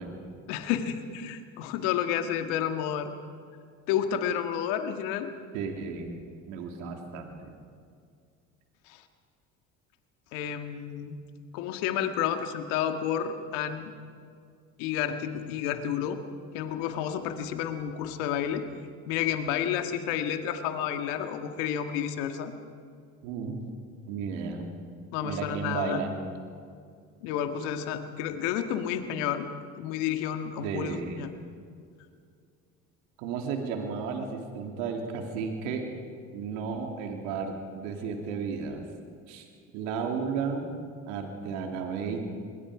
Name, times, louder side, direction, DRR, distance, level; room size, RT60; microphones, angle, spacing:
voice 1, 0.5-3.1 3.9-5.3 8.9-9.0 10.3-11.1 11.5-13.9 14.8-16.2 16.5-18.6 19.0-22.5 25.1-26.0 27.2-29.5 29.8-31.3, left 9 dB, 80° left, 7 dB, 1.9 m, -30 dB
voice 2, 5.5-7.5 23.2-23.6 24.1-24.7 25.2-26.2 30.6-31.3 33.2-35.9 36.3-38.8 39.3-39.5 39.7-40.7 41.1-42.2, right 5 dB, 80° right, 3 dB, 3.0 m, -33 dB
27.0 x 22.5 x 5.0 m, 2.2 s
hypercardioid pair, 70°, 35 cm